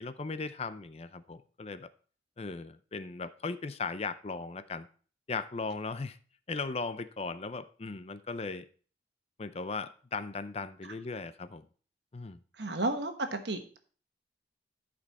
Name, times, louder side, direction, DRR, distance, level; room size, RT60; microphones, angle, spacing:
voice 1, 0.0-1.9 2.4-4.9 5.3-6.2 6.5-8.6 9.4-11.7 12.1-12.4, left 4 dB, 35° left, 0.5 m, -37 dB
voice 2, 12.5-13.8, right 2 dB, 75° right, 1.3 m, -33 dB
12.0 x 5.2 x 4.1 m
head